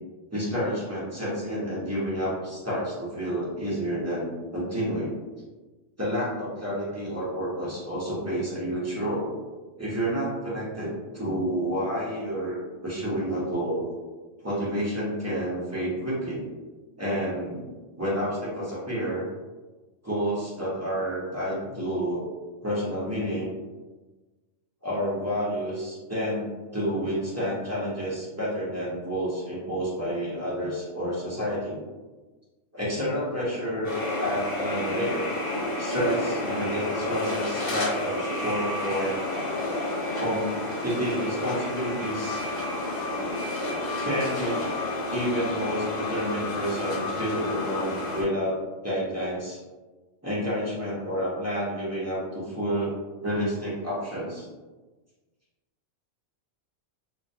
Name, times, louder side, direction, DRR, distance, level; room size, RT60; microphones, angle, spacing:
voice 1, 0.3-5.1 6.0-9.4 9.8-13.9 14.4-16.4 17.0-17.7 18.0-19.2 20.0-22.2 22.6-23.5 24.8-31.8 32.7-35.3 35.8-39.2 40.1-40.5 40.8-42.4 44.0-44.6 45.1-49.6 50.2-53.0 53.2-54.5, equal, 25° right, -8 dB, 0.3 m, -29 dB
sound 1, 33.8-48.2, left 2 dB, 50° left, 0.8 m, -30 dB
2.2 x 2.1 x 2.6 m, 1.2 s
omnidirectional pair, 1.3 m